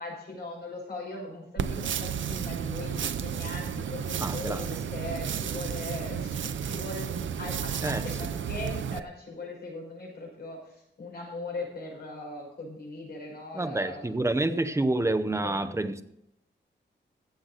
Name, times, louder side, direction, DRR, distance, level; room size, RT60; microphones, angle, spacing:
voice 1, 0.0-10.6 11.0-14.2 14.5-15.7, left 2 dB, 55° left, 5.5 m, -40 dB
sound 1, 1.6-9.0, right 8 dB, 75° right, 0.6 m, -32 dB
voice 2, 4.2-4.8 7.8-8.1 13.5-16.0, right 2 dB, 15° right, 0.8 m, -28 dB
15.5 x 7.7 x 4.0 m
wide cardioid pair, 135°, 20 cm